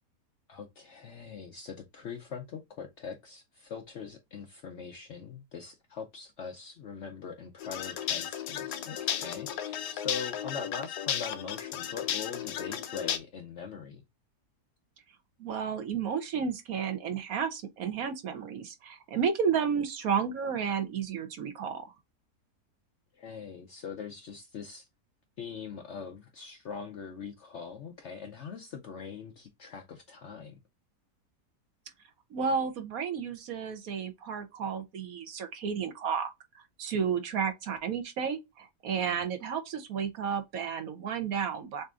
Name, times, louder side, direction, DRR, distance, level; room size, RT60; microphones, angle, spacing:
voice 1, 0.5-14.0 23.1-24.9 25.4-30.6 38.9-39.3, left 6 dB, 65° left, 0.7 m, -42 dB
sound 1, 7.6-13.2, left 9 dB, 80° left, 1.3 m, -34 dB
voice 2, 15.4-21.9 32.3-36.3 36.5-41.8, right 7 dB, 65° right, 1.2 m, -32 dB
6.6 x 2.6 x 2.4 m
omnidirectional pair, 1.7 m